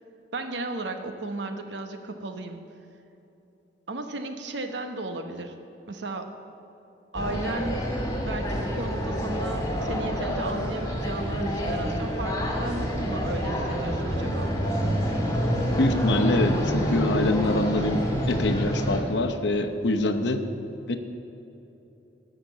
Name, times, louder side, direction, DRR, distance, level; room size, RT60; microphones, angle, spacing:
voice 1, 0.3-2.6 3.9-5.6 5.9-6.4 7.1-7.8 8.3-14.5, right 2 dB, 75° right, 6 dB, 0.9 m, -34 dB
sound 1, 7.1-19.0, equal, 20° left, 2.2 m, -27 dB
voice 2, 15.8-20.5 20.9-21.0, left 2 dB, 70° left, 6 dB, 0.8 m, -25 dB
13.0 x 5.9 x 8.3 m, 3.0 s
head